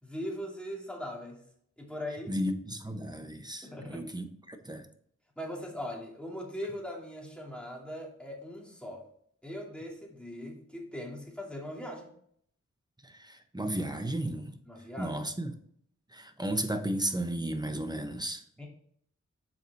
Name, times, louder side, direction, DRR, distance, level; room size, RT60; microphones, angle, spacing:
voice 1, 0.0-1.5 1.8-2.3 3.6-4.1 5.4-9.1 9.4-12.1 14.6-15.2 18.6-18.7, left 1 dB, 5° left, -1 dB, 2.5 m, -40 dB
voice 2, 2.3-4.9 13.0-14.6 15.0-15.5 16.1-18.4, right 1 dB, 15° right, 7 dB, 0.9 m, -34 dB
7.2 x 4.9 x 4.0 m, 0.66 s
wide cardioid pair, 50°, 31 cm